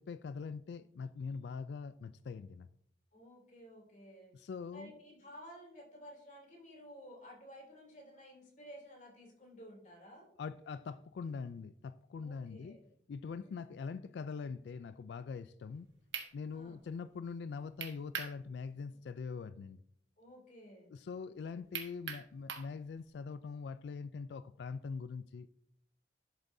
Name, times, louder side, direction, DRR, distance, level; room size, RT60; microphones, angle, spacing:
voice 1, 0.0-2.7 4.3-4.9 10.4-12.8 13.1-15.9 16.3-19.8 20.9-25.5, left 5 dB, 70° left, 0.3 m, -43 dB
voice 2, 3.1-4.3 4.7-10.3 12.2-12.8 13.4-13.5 16.5-16.8 20.2-20.9, equal, 45° left, 3.0 m, -54 dB
sound 1, 15.7-15.8 16.1-16.3 17.8-18.4 18.7-18.8 21.7-22.7, right 7 dB, 90° right, 1.4 m, -40 dB
11.0 x 8.0 x 2.7 m
head